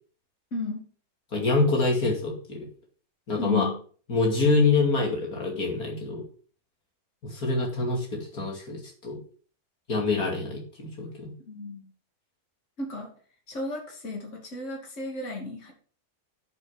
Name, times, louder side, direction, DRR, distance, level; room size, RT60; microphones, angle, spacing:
voice 1, 0.5-0.8 3.4-3.8 11.4-11.9 12.8-13.1 13.5-15.7, left 3 dB, 50° left, 0 dB, 2.9 m, -33 dB
voice 2, 1.3-2.6 3.3-3.7 4.1-6.2 7.3-9.2 9.9-11.3, left 3 dB, 70° left, -1 dB, 3.1 m, -25 dB
9.3 x 5.9 x 6.7 m, 0.42 s
omnidirectional pair, 1.6 m